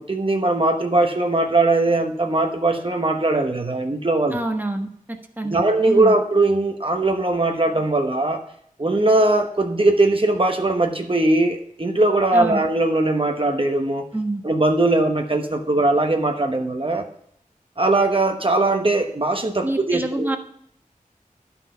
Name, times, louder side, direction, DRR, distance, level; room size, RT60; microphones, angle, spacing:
voice 1, 0.0-4.4 5.4-8.4 8.8-14.0 14.4-17.0 17.8-20.4, right 2 dB, 40° right, 3 dB, 1.1 m, -20 dB
voice 2, 4.3-4.9 5.4-6.1 12.3-12.6 14.1-14.4 19.6-20.4, right 1 dB, 15° right, 4 dB, 1.1 m, -26 dB
11.0 x 5.7 x 5.6 m, 0.67 s
wide cardioid pair, 55°, 14 cm